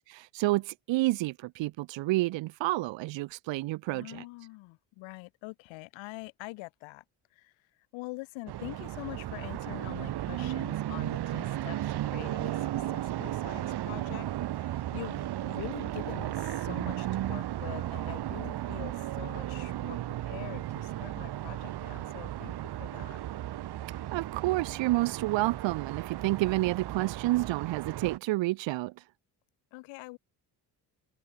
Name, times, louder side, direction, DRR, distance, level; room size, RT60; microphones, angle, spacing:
voice 1, 0.1-4.2 24.1-29.0, right 19 dB, 80° right, 1.4 m, -29 dB
voice 2, 3.9-7.0 7.3-7.5 7.9-14.3 14.5-23.2 29.7-30.2, left 23 dB, 85° left, 4.5 m, -44 dB
sound 1, 8.5-28.2, right 13 dB, 60° right, 1.2 m, -35 dB
supercardioid pair, 65°, 45 cm